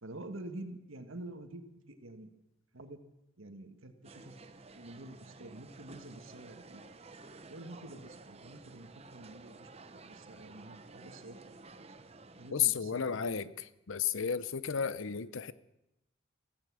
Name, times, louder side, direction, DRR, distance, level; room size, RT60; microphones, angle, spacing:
voice 1, 0.0-2.3 2.7-3.0 3.4-4.4 4.7-6.8 7.5-11.9 12.4-13.3, right 1 dB, 80° right, 7 dB, 1.7 m, -48 dB
sound 1, 4.0-12.5, right 3 dB, 30° right, 0.7 m, -53 dB
voice 2, 12.5-13.5 13.9-15.5, left 8 dB, 75° left, 16 dB, 0.7 m, -32 dB
15.5 x 15.0 x 6.3 m, 0.88 s
head